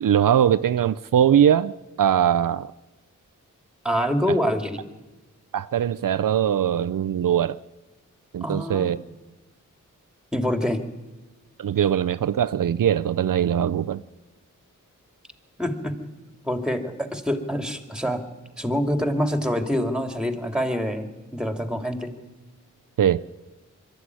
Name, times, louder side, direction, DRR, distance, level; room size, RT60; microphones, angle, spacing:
voice 1, 0.0-2.7 5.5-7.6 8.3-9.0 11.6-14.0 23.0-23.2, right 9 dB, 75° right, 0.6 m, -21 dB
voice 2, 3.8-4.8 8.4-8.9 10.3-10.8 15.6-16.0 16.4-18.2 18.6-22.1, equal, ahead, 2.8 m, -26 dB
22.0 x 13.0 x 9.7 m
cardioid pair, 50°, 33 cm